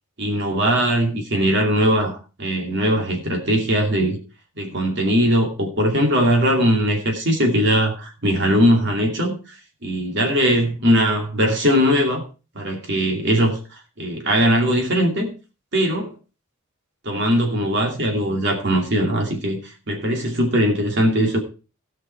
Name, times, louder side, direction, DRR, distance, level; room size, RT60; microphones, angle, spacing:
voice 1, 0.2-4.2 4.6-9.4 9.8-12.2 12.5-13.6 14.0-15.3 15.7-16.1 17.0-21.4, equal, 55° right, 2.6 m, -20 dB
17.5 x 5.9 x 4.6 m
head